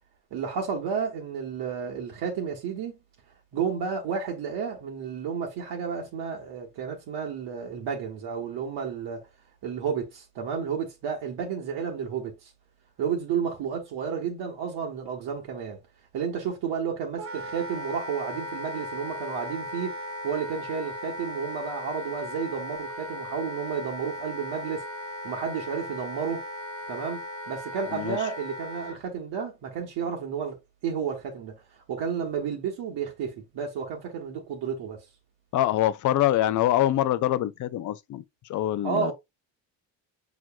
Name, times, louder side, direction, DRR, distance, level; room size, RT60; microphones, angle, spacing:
voice 1, 0.3-3.0 3.5-9.3 9.6-12.5 13.0-15.8 16.1-20.0 20.2-24.8 25.2-26.5 26.9-35.1 38.8-39.1, right 7 dB, 65° right, 1.3 m, -31 dB
Wind instrument woodwind instrument, 17.2-29.0, left 1 dB, 30° right, 0.8 m, -37 dB
voice 2, 35.5-38.2 38.5-39.1, left 13 dB, 45° left, 0.5 m, -24 dB
6.1 x 3.0 x 2.3 m
cardioid pair, 100°, 44 cm